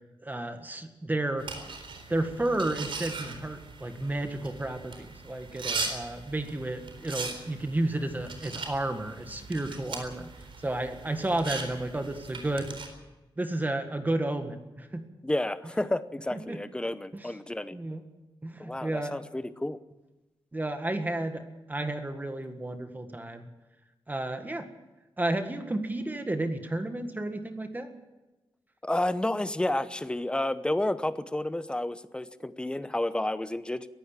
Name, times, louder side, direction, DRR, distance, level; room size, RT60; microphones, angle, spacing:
voice 1, 0.2-1.5 2.1-10.3 10.6-12.8 13.4-15.0 16.3-16.6 17.1-17.3 17.7-18.0 18.4-19.1 20.5-21.4 21.7-23.5 24.1-24.7 25.2-27.9, right 1 dB, 20° right, 7 dB, 1.7 m, -32 dB
sound 1, 1.4-12.9, right 4 dB, 70° right, 4.1 m, -39 dB
voice 2, 15.2-17.8 18.6-19.8 28.8-33.9, left 1 dB, 10° left, 13 dB, 0.8 m, -30 dB
22.0 x 16.0 x 7.4 m, 1.1 s
wide cardioid pair, 145°, 9 cm